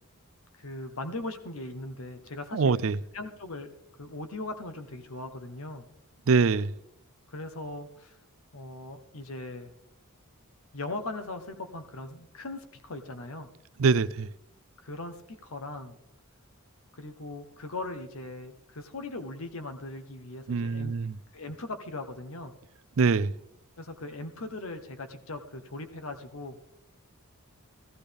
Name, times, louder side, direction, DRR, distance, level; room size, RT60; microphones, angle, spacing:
voice 1, 0.5-2.8 3.1-3.7 4.0-5.8 7.3-8.2 8.5-9.7 10.7-13.5 14.8-16.0 16.9-20.9 21.3-22.5 23.8-26.6, left 2 dB, 70° left, 1.0 m, -39 dB
voice 2, 2.5-3.0 6.3-6.7 13.8-14.3 20.5-21.2 23.0-23.3, right 4 dB, 65° right, 0.4 m, -24 dB
15.0 x 15.0 x 3.5 m
head